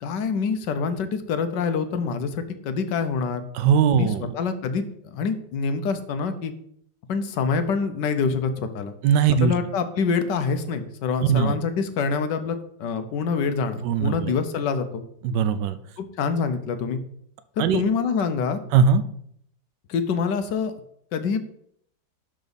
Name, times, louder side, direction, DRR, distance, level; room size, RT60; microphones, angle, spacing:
voice 1, 0.0-3.4 3.9-6.5 7.1-8.9 9.4-15.0 16.0-17.0 17.7-18.6 19.9-20.7 21.1-21.4, left 5 dB, 85° left, 9 dB, 1.5 m, -26 dB
voice 2, 3.5-4.3 9.0-9.5 11.2-11.6 13.8-14.3 15.2-15.8 17.6-17.8 18.7-19.0, right 6 dB, 80° right, 12 dB, 1.2 m, -20 dB
12.0 x 4.0 x 4.0 m, 0.69 s
omnidirectional pair, 1.8 m